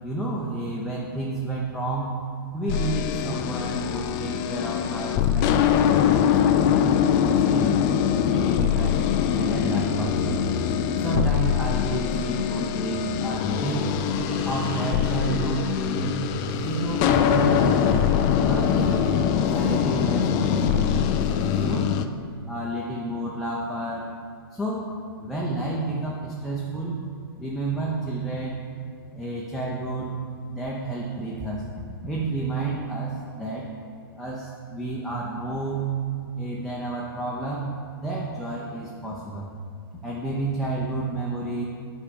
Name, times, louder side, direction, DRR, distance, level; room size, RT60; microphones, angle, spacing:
voice 1, 0.0-2.1 2.5-7.8 8.3-9.0 9.4-10.4 11.0-13.9 14.4-16.2 16.6-18.1 18.4-19.1 19.5-20.9 21.5-21.9 22.5-24.1 24.5-24.9 25.2-27.0 27.4-28.6 29.1-30.2 30.5-31.6 32.0-33.7 34.2-35.9 36.3-37.7 38.0-39.5 40.0-41.7, right 2 dB, ahead, -6 dB, 0.7 m, -30 dB
sound 1, 2.7-22.1, left 9 dB, 30° left, 0.4 m, -23 dB
sound 2, 13.7-21.8, right 3 dB, 40° right, 1.0 m, -38 dB
8.5 x 5.0 x 5.3 m, 2.4 s
hypercardioid pair, 140°, 13 cm